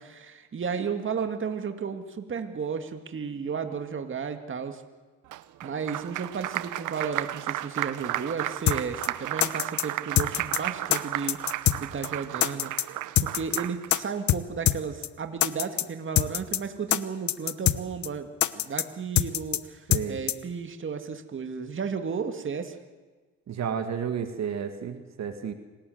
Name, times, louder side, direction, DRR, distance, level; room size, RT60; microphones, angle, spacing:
voice 1, 0.0-4.8 5.6-12.9 13.2-18.3 18.5-22.8, right 6 dB, 40° right, 6 dB, 2.2 m, -33 dB
Applause, 5.3-14.0, right 15 dB, 90° right, 0.9 m, -33 dB
sound 1, 8.7-8.8 9.0-9.1 9.4-9.8 10.2-10.6 10.9-11.0 11.3-11.8 12.0-12.1 12.4-12.8 13.2-13.6 13.9-14.0 14.3-14.4 14.7-14.8 15.0-15.1 15.4-15.8 16.2-16.6 16.9-17.0 17.3-17.8 18.0-18.1 18.4-18.8 19.2-19.6 19.9-20.0 20.3-20.4, left 13 dB, 70° left, 1.1 m, -23 dB
voice 2, 19.9-20.2 23.5-25.5, right 7 dB, 60° right, 7 dB, 2.1 m, -32 dB
27.5 x 18.5 x 7.9 m, 1.3 s
cardioid pair, 90°, 30 cm